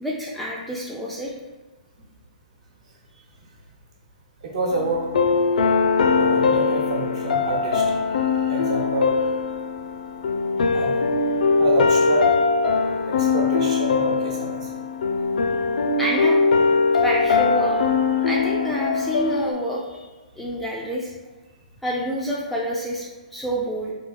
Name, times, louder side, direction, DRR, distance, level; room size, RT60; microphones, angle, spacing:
voice 1, 0.0-1.3 16.0-16.4 16.9-20.1 20.4-21.1 21.8-23.9, right 1 dB, ahead, -5 dB, 0.3 m, -28 dB
voice 2, 4.4-5.1 6.1-9.3 10.7-12.5 13.2-14.7, right 3 dB, 55° right, -1 dB, 1.0 m, -28 dB
sound 1, 4.7-19.5, left 4 dB, 75° left, 0.5 m, -21 dB
3.7 x 2.8 x 4.0 m, 1.2 s
hypercardioid pair, 160°, 4 cm